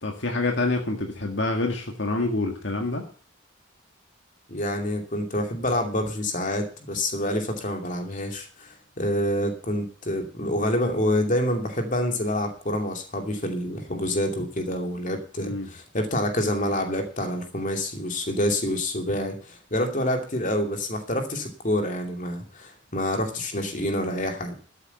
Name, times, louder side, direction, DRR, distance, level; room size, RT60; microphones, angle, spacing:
voice 1, 0.0-3.1 15.4-15.7, left 2 dB, 60° left, 3 dB, 1.8 m, -27 dB
voice 2, 4.5-24.5, left 1 dB, 40° left, 4 dB, 2.6 m, -27 dB
12.5 x 8.4 x 6.9 m, 0.41 s
head